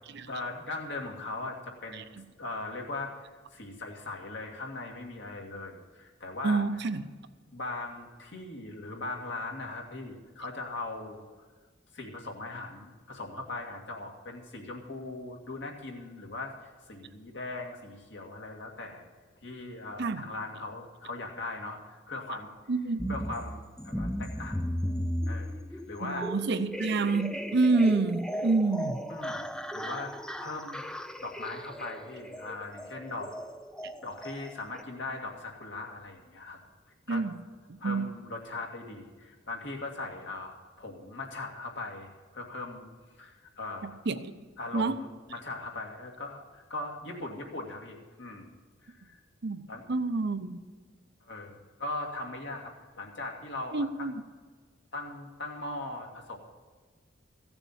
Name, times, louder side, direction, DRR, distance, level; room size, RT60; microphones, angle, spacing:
voice 1, 0.3-1.6 1.8-2.0 2.4-3.1 3.5-6.6 7.5-11.2 11.9-19.1 19.4-22.5 23.1-24.6 25.3-26.3 29.1-30.8 31.2-33.3 34.0-36.6 37.1-37.2 37.8-42.8 43.2-44.0 44.6-48.5 48.8-49.2 49.7-49.8 51.3-54.1 54.9-56.4, left 2 dB, 65° left, 1 dB, 2.2 m, -39 dB
voice 2, 6.4-7.0 20.0-20.2 22.7-23.2 26.0-29.0 33.8-33.9 37.1-37.3 37.7-38.1 43.8-44.3 44.7-45.0 49.4-49.6 49.9-50.6 53.7-54.1, right 3 dB, 60° right, 11 dB, 0.7 m, -28 dB
sound 1, 23.0-34.8, equal, 5° left, 0.4 m, -36 dB
15.5 x 7.0 x 7.3 m, 1.4 s
head